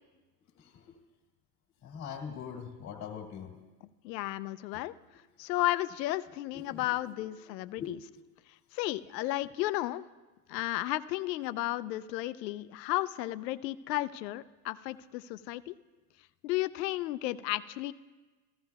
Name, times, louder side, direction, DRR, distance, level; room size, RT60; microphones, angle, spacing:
voice 1, 0.6-0.9 1.8-3.6 6.5-6.9 7.8-7.9, left 7 dB, 35° left, 2 dB, 1.8 m, -42 dB
voice 2, 4.0-4.9 5.4-8.0 8.7-10.0 10.5-15.8 16.4-17.9, left 16 dB, 85° left, 14 dB, 0.6 m, -33 dB
15.5 x 13.0 x 2.3 m, 1.3 s
supercardioid pair, 125°, 48 cm